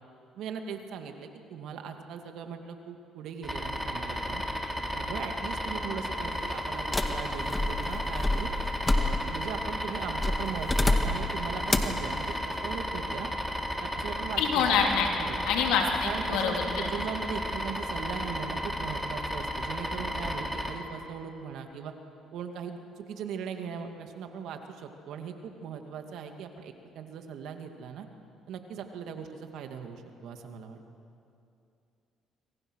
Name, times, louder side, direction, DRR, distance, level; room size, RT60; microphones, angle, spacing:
voice 1, 0.4-4.4 4.9-8.5 9.0-13.3 13.8-14.9 15.2-15.4 16.0-21.9 22.3-28.1 28.5-30.8, right 7 dB, 75° right, 5 dB, 2.3 m, -39 dB
sound 1, 3.4-20.7, equal, ahead, 3.6 m, -33 dB
sound 2, 6.9-9.5 10.2-11.3 11.7-12.0, left 2 dB, 20° left, 2.0 m, -28 dB
voice 2, 14.4-15.1 15.4-16.9, left 6 dB, 85° left, 1 dB, 3.4 m, -26 dB
27.0 x 24.0 x 6.5 m, 2.6 s
supercardioid pair, 80°, 0 cm